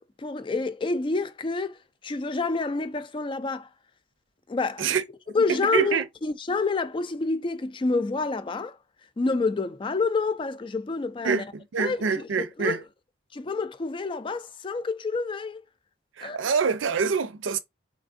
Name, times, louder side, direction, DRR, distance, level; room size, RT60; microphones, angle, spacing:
voice 1, 0.2-1.8 2.0-3.7 4.5-4.9 5.3-8.8 9.2-11.4 11.8-12.8 13.3-15.6 16.2-16.4, left 3 dB, 25° left, 0.4 m, -28 dB
voice 2, 5.5-6.1 11.2-12.8 16.2-17.6, right 5 dB, 90° right, 0.5 m, -26 dB
4.1 x 3.6 x 2.5 m
head